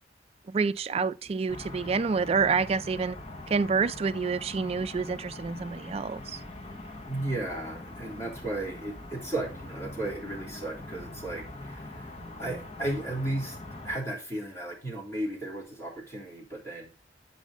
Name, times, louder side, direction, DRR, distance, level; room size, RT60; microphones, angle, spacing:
voice 1, 0.5-3.2 3.5-6.4, right 5 dB, 35° right, 0.3 m, -28 dB
sound 1, 1.5-14.0, left 2 dB, 35° left, 1.5 m, -43 dB
voice 2, 7.1-13.6 13.8-16.9, right 2 dB, 15° left, 3.3 m, -35 dB
8.1 x 5.1 x 5.2 m
head